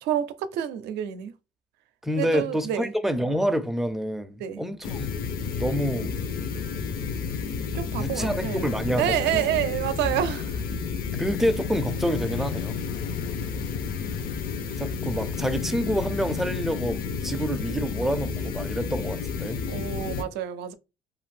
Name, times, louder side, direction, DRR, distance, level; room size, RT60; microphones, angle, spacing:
voice 1, 0.0-1.3 2.2-2.9 4.4-4.6 7.7-10.6 19.7-20.7, right 11 dB, 80° right, 0.5 m, -29 dB
voice 2, 2.0-5.1 5.6-6.1 7.9-9.5 11.2-12.8 14.8-19.6, equal, ahead, 0.4 m, -27 dB
sound 1, 4.8-20.2, left 5 dB, 60° left, 0.5 m, -31 dB
2.6 x 2.5 x 3.3 m
cardioid pair, 110°, 17 cm